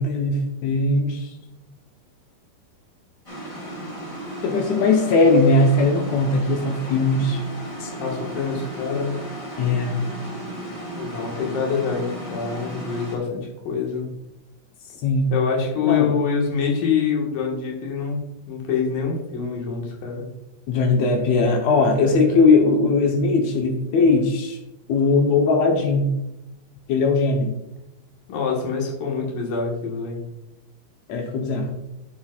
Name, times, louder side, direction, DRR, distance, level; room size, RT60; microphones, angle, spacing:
voice 1, 0.0-1.3 4.4-7.4 7.8-7.9 9.6-10.0 15.0-15.3 15.8-16.1 20.7-24.6 24.9-26.1 26.9-27.5 31.1-31.7, left 3 dB, 85° left, 2 dB, 1.5 m, -19 dB
sound 1, 3.2-13.1, right 1 dB, 35° left, 1.5 m, -35 dB
voice 2, 8.0-9.2 10.9-14.1 15.3-20.3 22.0-22.5 28.3-30.2, left 6 dB, 65° left, -1 dB, 3.1 m, -25 dB
10.0 x 9.1 x 2.4 m, 0.93 s
omnidirectional pair, 4.4 m